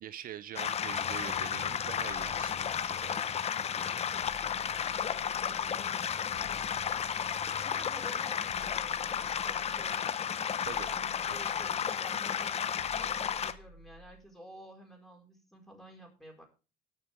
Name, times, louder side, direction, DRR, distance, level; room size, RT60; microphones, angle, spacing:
voice 1, 0.0-3.5 10.7-10.9 11.3-11.4, right 11 dB, 55° right, 15 dB, 0.6 m, -44 dB
sound 1, 0.5-13.5, left 8 dB, 40° left, 0.7 m, -33 dB
sound 2, 4.2-5.8 6.3-7.8 8.5-10.1 10.6-12.0 12.8-14.4, left 1 dB, 80° left, 1.8 m, -55 dB
voice 2, 4.9-6.0 7.6-10.2 10.8-16.4, right 1 dB, ahead, 1 dB, 4.9 m, -52 dB
18.5 x 7.0 x 3.6 m, 0.32 s
cardioid pair, 110°, 17 cm